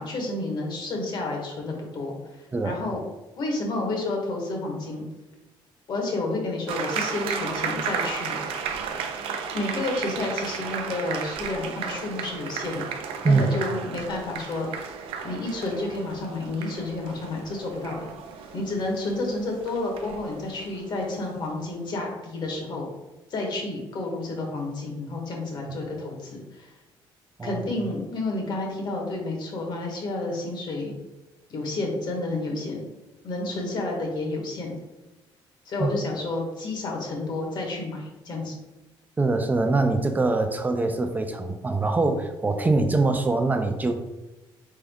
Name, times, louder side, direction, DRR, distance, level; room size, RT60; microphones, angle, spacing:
voice 1, 0.0-2.2 2.6-3.0 3.4-5.0 5.9-8.8 9.5-12.9 13.2-14.9 15.2-18.1 18.5-22.9 23.3-26.7 27.4-30.9 31.5-32.8 33.2-34.7 35.6-38.6, left 2 dB, 55° left, 0 dB, 1.4 m, -30 dB
sound 1, 6.7-21.6, right 6 dB, 85° right, 0.5 m, -34 dB
voice 2, 39.2-43.9, right 3 dB, 20° right, 7 dB, 0.5 m, -23 dB
3.9 x 3.6 x 3.5 m, 1.1 s
cardioid pair, 115°, 9 cm